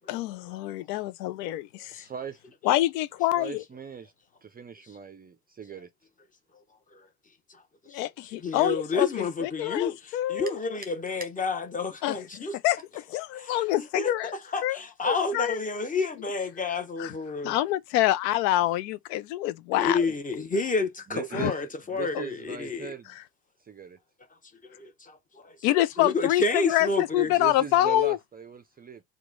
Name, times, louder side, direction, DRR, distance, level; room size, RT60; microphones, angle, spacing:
voice 1, 0.1-2.0 2.6-3.6 7.9-9.1 9.4-10.5 12.0-12.1 12.6-14.3 14.6-14.8 15.0-15.6 17.0-17.1 17.4-20.0 21.3-21.5 22.1-22.2 25.6-28.2, left 14 dB, 75° left, 0.6 m, -26 dB
voice 2, 1.9-2.4 3.4-4.1 4.4-5.9 21.1-21.5 21.9-23.1 23.6-24.0 26.9-29.0, right 7 dB, 20° right, 0.5 m, -39 dB
voice 3, 8.3-12.6 13.3-17.6 19.7-22.9 24.6-25.7 26.0-27.3, left 3 dB, 15° left, 0.8 m, -30 dB
3.0 x 2.3 x 3.7 m
hypercardioid pair, 85°, 50 cm